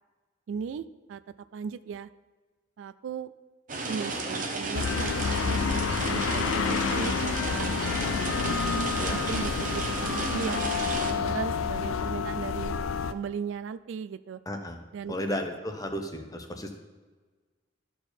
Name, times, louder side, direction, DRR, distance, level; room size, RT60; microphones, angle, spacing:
voice 1, 0.5-1.2 1.5-2.1 2.8-3.3 3.9-7.7 8.4-12.8 13.1-14.4 14.9-15.1, right 6 dB, 70° right, 14 dB, 0.3 m, -37 dB
sound 1, 3.7-11.1, right 3 dB, 45° right, 0.9 m, -33 dB
sound 2, 4.7-13.1, left 6 dB, 85° left, 0.4 m, -29 dB
voice 2, 8.1-8.5 9.0-9.2 14.5-14.8 15.1-16.7, left 1 dB, 20° left, 5 dB, 0.7 m, -34 dB
13.0 x 4.6 x 4.4 m, 1.4 s
head